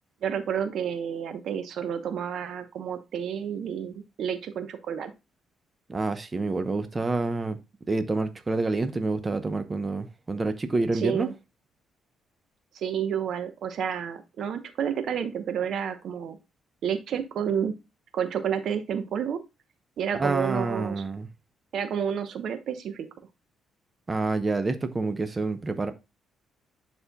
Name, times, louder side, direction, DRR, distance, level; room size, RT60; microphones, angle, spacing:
voice 1, 0.2-5.1 10.9-11.3 12.7-16.4 16.8-17.7 18.1-19.4 20.0-21.0 21.7-23.1, right 8 dB, 70° right, 0.9 m, -30 dB
voice 2, 5.9-7.6 7.9-11.3 20.2-21.3 24.1-25.9, right 3 dB, 25° right, 0.8 m, -28 dB
11.0 x 4.3 x 2.3 m
cardioid pair, 90°, 0 cm